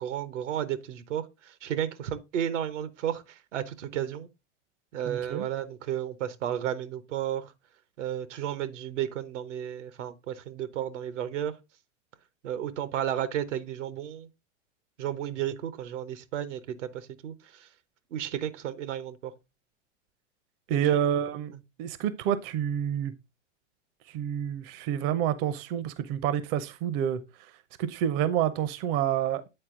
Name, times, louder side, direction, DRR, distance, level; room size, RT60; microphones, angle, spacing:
voice 1, 0.0-4.3 4.9-7.5 8.0-11.6 12.4-14.3 15.0-17.7 18.1-19.3 20.7-20.8, right 10 dB, 75° right, 1.0 m, -33 dB
voice 2, 5.1-5.5 20.7-21.5 21.8-23.1 24.1-27.5 27.8-29.5, right 10 dB, 50° right, 0.7 m, -28 dB
8.8 x 4.2 x 3.7 m
hypercardioid pair, 105°, 36 cm